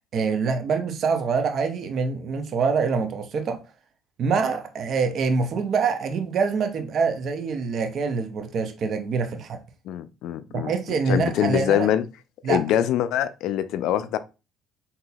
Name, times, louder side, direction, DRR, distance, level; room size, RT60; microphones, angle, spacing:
voice 1, 0.1-3.6 4.2-9.6 10.5-11.9 12.4-12.6, right 5 dB, 55° right, 0.6 m, -25 dB
voice 2, 9.9-10.7 11.1-12.0 12.5-14.2, left 11 dB, 75° left, 0.3 m, -24 dB
3.9 x 2.7 x 2.3 m
supercardioid pair, 85°, 0 cm